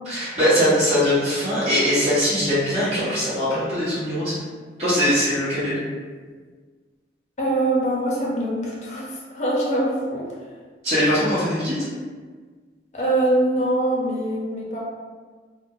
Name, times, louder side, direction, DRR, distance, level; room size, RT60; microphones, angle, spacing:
voice 1, 0.0-4.3 4.8-5.8 10.8-11.8, equal, 35° right, -13 dB, 1.1 m, -21 dB
voice 2, 7.4-10.2 12.9-14.8, right 1 dB, 40° left, -4 dB, 0.6 m, -23 dB
2.5 x 2.1 x 3.7 m, 1.5 s
head